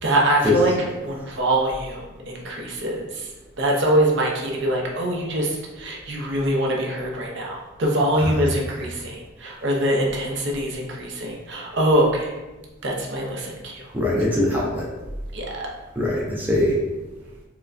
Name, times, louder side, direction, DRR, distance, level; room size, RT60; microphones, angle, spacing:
voice 1, 0.0-3.3 3.6-12.3 12.8-13.9 15.3-15.7, right 1 dB, 60° right, -1 dB, 0.6 m, -24 dB
voice 2, 8.2-8.5 13.9-14.9 16.0-16.8, left 1 dB, 10° right, -4 dB, 0.4 m, -22 dB
4.6 x 2.2 x 2.5 m, 1.1 s
head